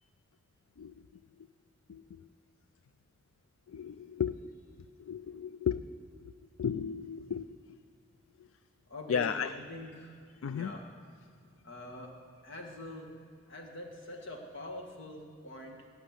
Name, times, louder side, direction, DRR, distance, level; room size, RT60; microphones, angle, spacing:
voice 1, 1.9-2.2 3.7-4.3 5.0-5.8 6.2-6.3 6.6-7.8 9.1-9.5 10.4-10.7, left 7 dB, 80° left, 12 dB, 0.4 m, -34 dB
voice 2, 8.9-10.1 10.5-10.8 11.6-12.2 12.4-13.1 13.5-15.9, left 1 dB, 65° left, 1 dB, 2.0 m, -44 dB
17.5 x 5.9 x 9.6 m, 2.3 s
head